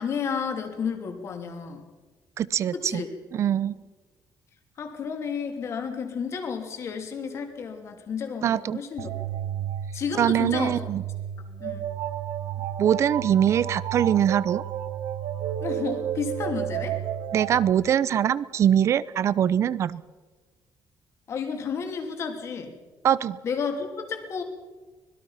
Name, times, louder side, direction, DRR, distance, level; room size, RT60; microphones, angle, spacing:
voice 1, 0.0-1.8 2.7-3.1 4.8-9.1 9.9-10.8 11.6-11.8 15.6-17.0 21.3-22.7 23.4-24.4, left 6 dB, 40° left, 5 dB, 3.0 m, -31 dB
voice 2, 2.4-3.0 3.3-3.8 8.4-8.8 10.2-11.0 12.8-14.6 17.3-20.0 23.0-23.4, right 9 dB, 40° right, 18 dB, 0.7 m, -23 dB
sound 1, 9.0-17.7, right 10 dB, 80° right, 1.1 m, -32 dB
25.0 x 20.5 x 5.8 m, 1.3 s
cardioid pair, 180°, 7 cm